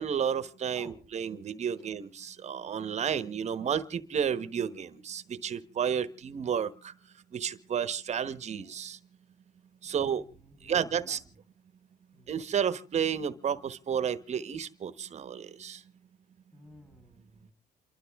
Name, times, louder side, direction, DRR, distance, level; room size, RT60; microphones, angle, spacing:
voice 1, 0.0-6.9 7.3-9.0 9.8-10.2 10.6-11.2 12.3-15.8, right 8 dB, 40° right, 13 dB, 1.1 m, -31 dB
voice 2, 9.8-11.2 12.1-12.3 16.5-17.5, left 1 dB, 10° left, 3 dB, 4.0 m, -54 dB
28.5 x 12.5 x 3.6 m, 0.35 s
cardioid pair, 110°, 17 cm